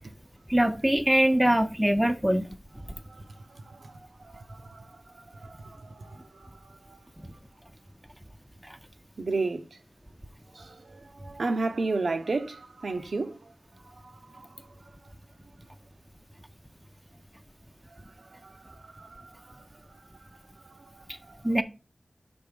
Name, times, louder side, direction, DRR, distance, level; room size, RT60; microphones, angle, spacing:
voice 1, 0.5-2.5 21.4-21.6, right 1 dB, 10° right, 0.5 m, -22 dB
voice 2, 2.9-4.9 5.3-7.0 9.2-9.7 10.5-13.5 14.0-14.6 17.9-19.6 20.6-21.4, right 3 dB, 80° right, 0.6 m, -35 dB
5.6 x 3.4 x 5.1 m
wide cardioid pair, 65°, 0 cm